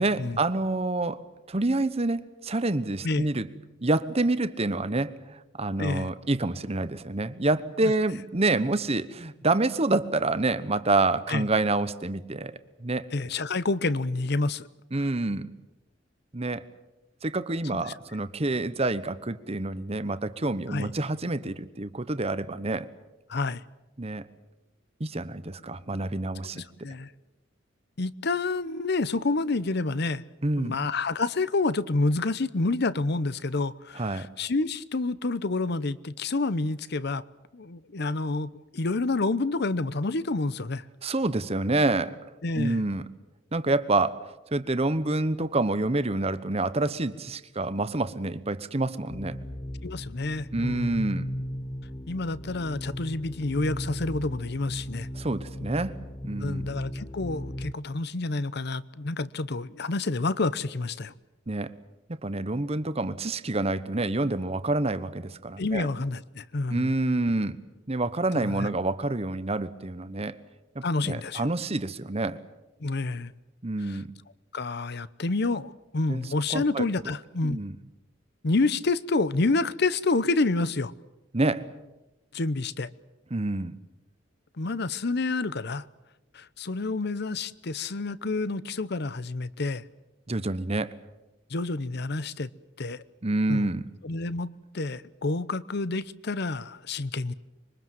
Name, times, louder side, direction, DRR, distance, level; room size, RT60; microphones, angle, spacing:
voice 1, 0.0-3.5 3.8-13.1 14.9-15.5 16.3-16.6 17.2-22.9 24.0-24.3 25.0-26.6 30.4-30.7 33.9-34.3 41.0-42.2 42.5-43.1 43.5-44.2 44.5-49.4 50.5-51.2 55.1-56.0 56.2-56.7 61.5-61.7 62.1-65.9 66.7-67.6 67.9-70.4 70.7-72.4 73.6-74.1 76.1-76.2 76.5-76.8 77.4-77.8 81.3-81.7 83.3-83.7 90.3-91.0 93.2-93.9, right 2 dB, 30° right, 1.0 m, -27 dB
voice 2, 5.8-6.1 7.8-7.9 11.3-11.5 13.1-14.7 17.7-17.8 20.7-20.9 23.3-23.6 26.5-27.1 28.0-30.2 30.6-37.2 37.5-40.8 42.4-42.8 49.8-51.0 52.1-55.1 56.4-61.1 65.6-66.9 68.3-68.7 70.8-71.5 72.8-73.3 73.9-74.0 74.5-77.6 78.4-80.9 82.3-82.9 84.6-85.9 86.3-89.8 91.5-92.5 92.8-93.0 93.5-93.7 94.0-97.3, left 3 dB, 60° left, 0.8 m, -28 dB
sound 1, 49.1-57.7, equal, 20° left, 0.8 m, -36 dB
25.5 x 23.0 x 7.6 m
head